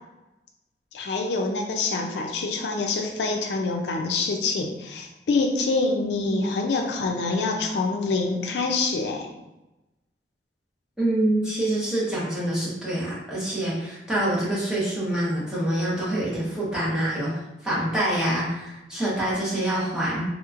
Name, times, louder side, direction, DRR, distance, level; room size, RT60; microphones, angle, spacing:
voice 1, 0.9-9.3, left 3 dB, 75° left, 3 dB, 0.4 m, -26 dB
voice 2, 11.0-17.4 17.6-20.2, right 1 dB, 5° right, -8 dB, 1.0 m, -26 dB
3.6 x 2.9 x 2.4 m, 0.97 s
head